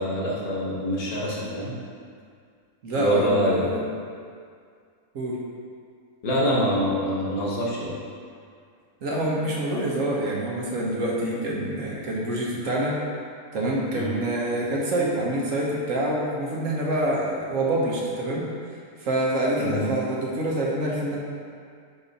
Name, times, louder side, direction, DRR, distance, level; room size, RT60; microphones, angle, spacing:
voice 1, 0.0-1.7 2.9-3.6 6.2-8.0 13.9-14.1 19.6-19.8, equal, 80° left, -4 dB, 1.7 m, -25 dB
voice 2, 2.8-3.9 5.1-5.4 9.0-13.0 13.5-18.4 19.0-21.2, right 1 dB, 65° right, -4 dB, 1.4 m, -26 dB
5.6 x 4.7 x 4.0 m, 2.2 s
omnidirectional pair, 1.5 m